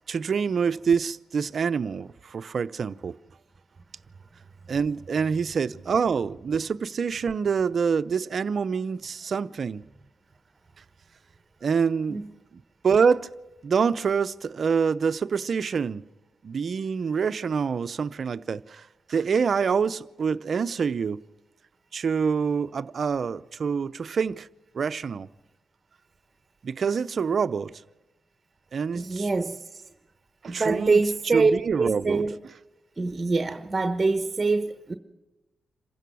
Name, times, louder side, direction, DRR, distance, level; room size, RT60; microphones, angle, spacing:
voice 1, 0.1-3.2 4.7-9.8 11.6-12.2 12.8-13.3 13.6-16.0 16.4-21.2 21.9-24.5 24.7-25.3 26.6-27.7 28.7-29.3 30.4-31.0 31.3-32.2, right 6 dB, 55° right, 0.7 m, -26 dB
voice 2, 28.9-29.6 30.5-31.5 31.8-32.3 33.0-34.9, right 3 dB, 30° right, 1.2 m, -24 dB
27.0 x 15.5 x 6.3 m
cardioid pair, 75°, 0 cm